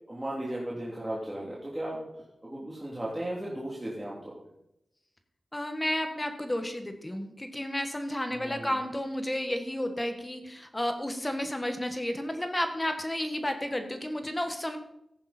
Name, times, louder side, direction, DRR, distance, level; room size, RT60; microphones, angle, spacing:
voice 1, 0.1-2.0 2.4-4.3 8.3-8.8, right 1 dB, 10° right, -6 dB, 3.1 m, -36 dB
voice 2, 5.5-14.8, left 1 dB, 15° left, 6 dB, 1.5 m, -32 dB
14.5 x 11.0 x 4.4 m, 0.81 s
wide cardioid pair, 95°, 0 cm